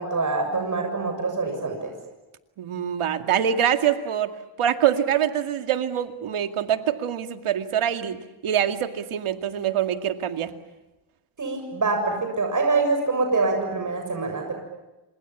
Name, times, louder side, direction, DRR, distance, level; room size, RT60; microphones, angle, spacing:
voice 1, 0.0-1.9 11.4-14.5, right 3 dB, 35° right, 3 dB, 7.3 m, -25 dB
voice 2, 2.6-4.3 4.6-8.2 8.4-10.5, right 9 dB, 80° right, 7 dB, 2.3 m, -24 dB
29.0 x 27.0 x 7.3 m, 1.1 s
cardioid pair, 105°, 50 cm